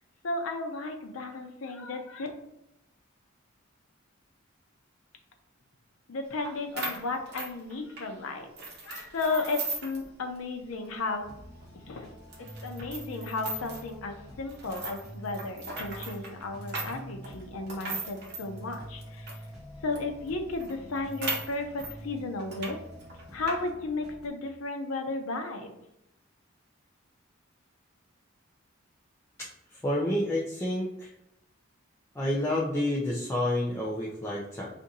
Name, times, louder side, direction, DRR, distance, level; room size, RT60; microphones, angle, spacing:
voice 1, 0.2-2.3 6.1-8.5 8.9-11.3 11.7-12.1 12.6-19.3 19.8-22.8 23.3-25.7, left 3 dB, 85° left, 4 dB, 0.6 m, -34 dB
sound 1, 6.4-6.5 6.8-8.1 8.6-10.0 10.4-10.5 10.8-11.0 11.5-11.6 12.3-13.9 14.5-19.4 19.9-20.0 20.3-20.4 20.6-21.9 22.4-22.7 23.0-23.6, right 3 dB, 55° right, 0.9 m, -37 dB
sound 2, 11.2-24.3, equal, ahead, 0.9 m, -46 dB
voice 2, 29.4-31.1 32.1-34.7, left 1 dB, 15° left, -6 dB, 0.5 m, -29 dB
2.6 x 2.5 x 4.0 m, 0.85 s
head